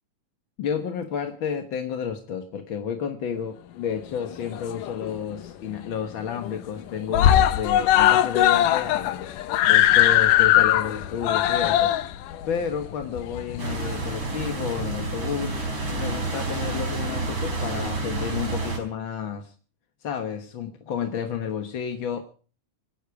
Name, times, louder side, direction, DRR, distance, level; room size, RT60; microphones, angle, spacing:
voice 1, 0.6-9.3 9.7-12.0 12.5-15.5 16.0-19.5 20.0-22.2, left 7 dB, 55° left, 1.5 m, -31 dB
Screaming, 4.2-5.2 5.5-5.6 5.9-6.0 6.3-6.8 7.1-13.9 14.8-14.9, left 12 dB, 80° left, 2.5 m, -20 dB
sound 1, 13.6-18.8, right 2 dB, 35° right, 4.9 m, -29 dB
26.0 x 10.0 x 4.8 m
omnidirectional pair, 3.8 m